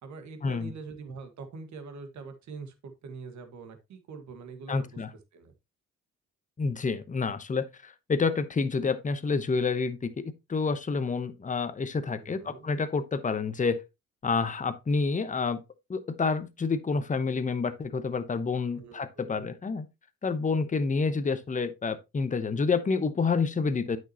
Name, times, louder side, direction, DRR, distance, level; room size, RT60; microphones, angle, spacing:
voice 1, 0.0-5.0 5.3-5.5 12.0-12.7 18.8-19.5, right 4 dB, 70° right, 1.7 m, -44 dB
voice 2, 4.7-5.1 6.6-10.1 10.5-13.8 14.2-15.6 15.9-19.9 20.2-24.0, left 4 dB, 25° left, 0.9 m, -28 dB
9.1 x 6.2 x 2.9 m
cardioid pair, 90°, 30 cm